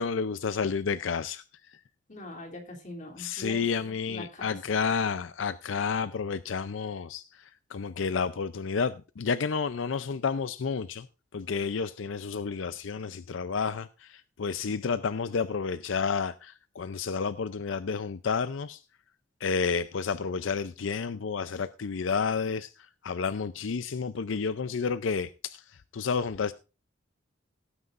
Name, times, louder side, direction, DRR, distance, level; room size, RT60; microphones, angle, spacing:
voice 1, 0.0-1.8 3.2-11.1 11.3-18.8 19.4-26.5, left 5 dB, 80° left, 0.5 m, -31 dB
voice 2, 2.1-3.6 4.1-4.6, left 2 dB, 40° left, 3.0 m, -42 dB
17.5 x 9.6 x 2.5 m
head